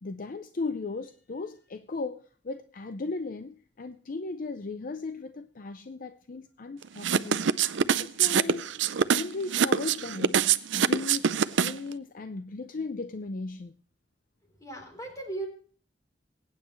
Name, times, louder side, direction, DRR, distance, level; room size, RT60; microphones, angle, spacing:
voice 1, 0.0-7.5 8.0-10.4 10.7-13.7, left 3 dB, 45° left, 0.5 m, -37 dB
sound 1, 7.0-11.9, right 7 dB, 80° right, 0.5 m, -24 dB
voice 2, 14.4-15.5, right 2 dB, 20° left, 3.8 m, -37 dB
22.0 x 9.6 x 3.1 m
head